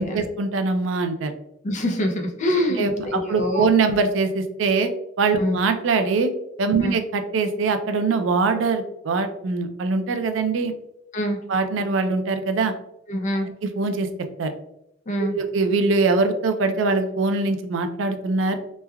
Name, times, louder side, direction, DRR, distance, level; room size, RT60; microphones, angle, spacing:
voice 1, 0.0-1.3 2.8-4.9 5.2-6.3 6.6-10.7 11.5-12.7 13.6-14.1 14.4-14.5 15.2-18.6, right 4 dB, 80° right, 8 dB, 0.4 m, -22 dB
voice 2, 1.6-3.7 5.4-5.6 6.8-6.9 11.1-11.4 13.1-13.5 15.1-15.4, left 1 dB, 40° left, 3 dB, 0.5 m, -25 dB
3.1 x 2.2 x 2.2 m, 0.82 s
head